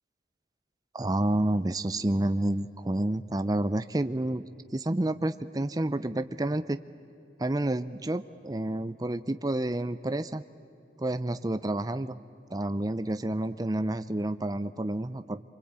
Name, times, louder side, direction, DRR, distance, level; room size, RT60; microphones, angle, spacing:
voice 1, 0.9-4.4 4.7-6.8 7.4-10.4 11.0-12.2 12.5-15.4, right 1 dB, 20° right, 11 dB, 0.5 m, -29 dB
26.5 x 24.0 x 8.8 m, 2.7 s
head